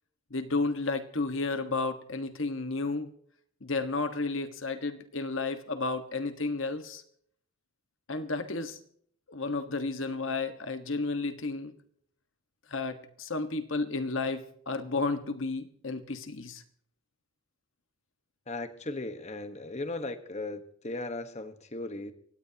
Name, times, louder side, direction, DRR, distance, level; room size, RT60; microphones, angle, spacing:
voice 1, 0.3-3.1 3.6-7.0 8.1-8.8 9.3-11.7 12.7-16.6, left 3 dB, 65° left, 8 dB, 1.5 m, -32 dB
voice 2, 18.5-22.1, left 2 dB, 35° left, 8 dB, 1.3 m, -37 dB
23.0 x 17.5 x 2.9 m, 0.63 s
head